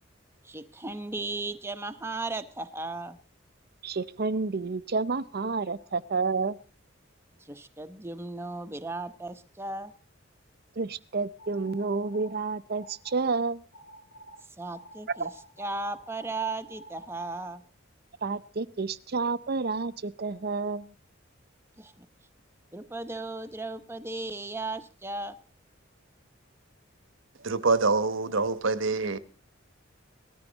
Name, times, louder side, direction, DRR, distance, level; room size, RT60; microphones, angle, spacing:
voice 1, 0.4-3.2 7.4-9.9 14.6-15.3 15.6-17.6 21.8-22.1 22.7-25.4, right 2 dB, 10° right, 0.9 m, -36 dB
voice 2, 3.8-6.6 10.8-13.6 15.2-15.3 18.2-20.9, right 4 dB, 50° right, 0.7 m, -30 dB
sound 1, 11.4-12.3 12.7-13.4 13.7-14.4 14.7-17.4, equal, 70° left, 3.9 m, -49 dB
voice 3, 27.4-29.2, right 3 dB, 75° right, 1.1 m, -25 dB
19.0 x 13.5 x 4.0 m
head